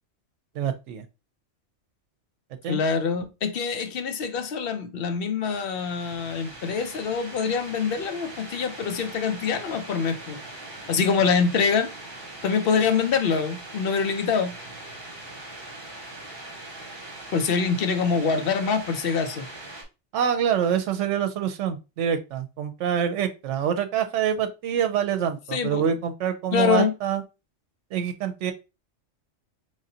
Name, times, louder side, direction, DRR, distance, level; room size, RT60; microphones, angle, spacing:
voice 1, 0.6-1.0 2.6-2.8 20.1-27.2 27.9-28.5, right 8 dB, 75° right, 0.9 m, -26 dB
voice 2, 2.7-10.4 10.9-11.9 12.4-14.5 17.3-19.5 25.5-25.9 26.5-26.9, left 6 dB, 60° left, 0.7 m, -25 dB
sound 1, 5.4-19.8, right 2 dB, 45° right, 1.4 m, -41 dB
3.8 x 3.2 x 2.7 m
omnidirectional pair, 1.2 m